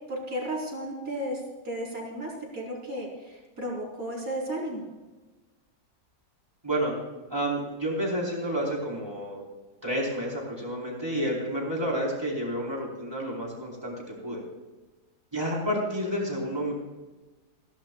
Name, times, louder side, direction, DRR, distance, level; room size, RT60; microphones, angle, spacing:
voice 1, 0.1-4.8, right 1 dB, 55° right, -2 dB, 4.3 m, -34 dB
voice 2, 7.3-9.4 9.8-14.4 15.3-16.7, equal, 15° right, -2 dB, 4.2 m, -30 dB
28.0 x 11.5 x 2.4 m, 1.2 s
omnidirectional pair, 1.8 m